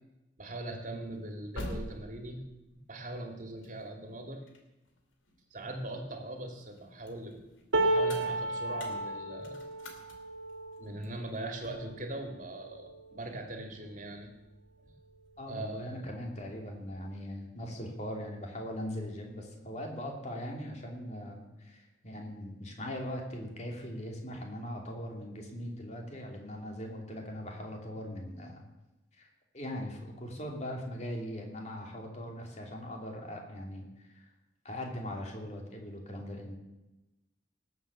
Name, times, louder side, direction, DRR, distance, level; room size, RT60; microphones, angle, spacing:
voice 1, 0.4-2.4 2.9-4.4 5.5-7.4 7.8-9.6 10.8-14.3 14.8-14.9 15.5-16.0, right 1 dB, 40° right, 3 dB, 2.4 m, -41 dB
sound 1, 1.1-6.1 6.5-12.0, left 1 dB, 85° left, 2.5 m, -47 dB
sound 2, 7.7-13.9 14.5-14.7 14.9-15.7 16.7-16.8, right 2 dB, 75° right, 1.4 m, -34 dB
voice 2, 15.4-28.6 29.2-29.3 29.5-34.2 34.6-36.6, equal, 35° left, 1 dB, 2.8 m, -40 dB
19.0 x 7.9 x 7.2 m, 1.0 s
head